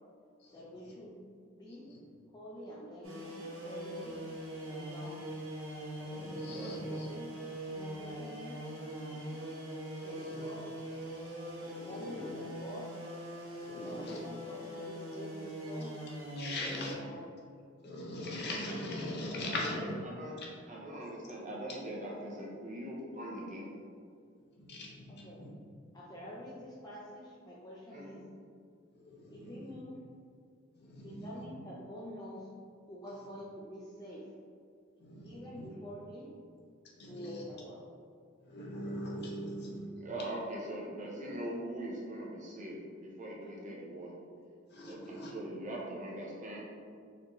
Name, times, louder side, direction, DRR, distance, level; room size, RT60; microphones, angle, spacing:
voice 1, 0.5-1.2 1.6-1.9 2.3-4.1 4.7-5.3 6.9-7.3 7.7-8.8 10.0-10.7 11.9-13.0 13.7-15.9 16.7-17.2 25.1-25.5 25.9-28.2 29.3-30.0 31.0-32.5 32.9-34.3 35.2-36.3 37.0-37.8 43.4-43.8, left 1 dB, 20° left, -6 dB, 0.4 m, -47 dB
sound 1, 3.0-16.9, right 1 dB, 75° right, 1.1 m, -42 dB
voice 2, 6.0-7.1 10.1-10.5 11.6-12.3 13.6-14.2 16.4-16.9 17.8-20.0 20.4-20.5 24.6-25.5 29.0-29.7 30.8-31.2 35.0-35.7 37.0-37.4 38.4-39.9 44.7-45.3, left 1 dB, 55° left, -2 dB, 0.7 m, -41 dB
voice 3, 6.5-6.9 9.1-9.4 19.7-20.4 20.7-23.7 27.9-28.2 40.0-44.1 44.9-46.6, right 1 dB, 40° right, -3 dB, 0.7 m, -42 dB
4.2 x 2.6 x 3.0 m, 2.2 s
head